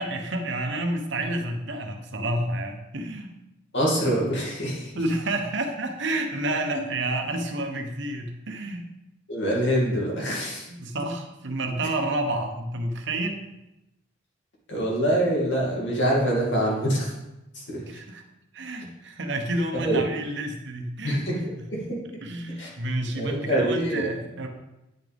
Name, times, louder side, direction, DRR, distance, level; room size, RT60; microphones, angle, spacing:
voice 1, 0.0-3.3 4.9-8.8 10.7-13.4 17.9-18.2 18.5-21.2 21.5-21.7 22.2-24.5, right 1 dB, 60° right, 4 dB, 1.1 m, -29 dB
voice 2, 3.7-4.9 9.3-10.7 14.7-17.1 17.5-17.8 19.8-20.0 21.0-21.4 21.7-21.8 22.6-22.7 23.1-24.0, right 1 dB, 65° left, -3 dB, 2.5 m, -25 dB
10.0 x 6.1 x 3.5 m, 0.94 s
head